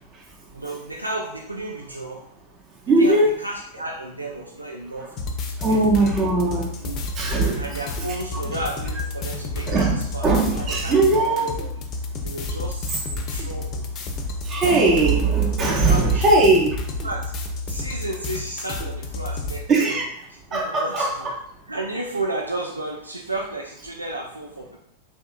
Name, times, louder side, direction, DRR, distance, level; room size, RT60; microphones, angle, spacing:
voice 1, 0.5-2.3 3.0-5.2 5.5-6.0 6.8-7.0 7.6-11.7 12.2-13.8 15.9-16.2 17.0-17.3 17.7-20.0 20.3-21.3 21.7-24.8, right 2 dB, 85° right, 0 dB, 0.3 m, -33 dB
voice 2, 2.9-3.3 5.6-6.7 7.2-7.7 8.4-8.6 9.7-11.5 14.4-16.8 19.7-20.0 20.5-21.3, right 3 dB, 30° right, -1 dB, 0.6 m, -19 dB
sound 1, 5.2-19.6, left 2 dB, 35° left, 0.5 m, -31 dB
3.4 x 2.6 x 2.4 m, 0.71 s
figure-of-eight pair, 90°, 0 cm